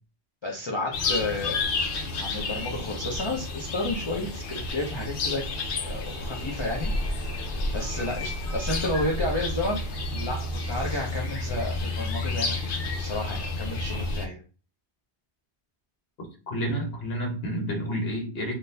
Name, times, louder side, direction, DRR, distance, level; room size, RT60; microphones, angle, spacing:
voice 1, 0.4-1.6 2.2-5.4 5.8-7.4 7.7-9.8 10.1-14.4, left 2 dB, 35° left, 0.5 m, -31 dB
sound 1, 0.9-14.3, left 2 dB, 85° left, 1.0 m, -30 dB
voice 2, 16.2-18.5, equal, 65° left, 1.3 m, -30 dB
3.8 x 2.5 x 2.6 m
omnidirectional pair, 1.1 m